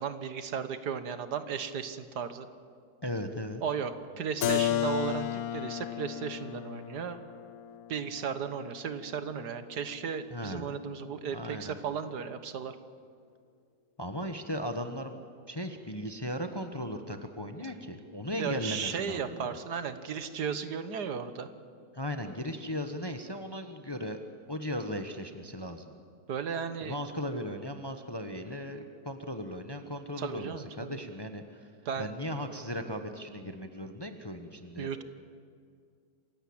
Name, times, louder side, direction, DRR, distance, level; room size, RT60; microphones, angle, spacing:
voice 1, 0.0-2.5 3.6-7.2 7.9-12.8 18.4-21.5 26.3-26.9 30.2-31.0 31.9-32.1 34.8-35.0, right 7 dB, 70° right, 11 dB, 1.7 m, -35 dB
voice 2, 3.0-3.6 10.3-10.7 11.3-11.7 14.0-19.6 21.9-24.2 24.5-25.9 26.8-31.7 32.0-34.9, equal, 15° left, 7 dB, 1.0 m, -37 dB
Keyboard (musical), 4.4-10.0, left 12 dB, 65° left, 1.3 m, -34 dB
27.5 x 16.0 x 8.7 m, 2.2 s
omnidirectional pair, 1.8 m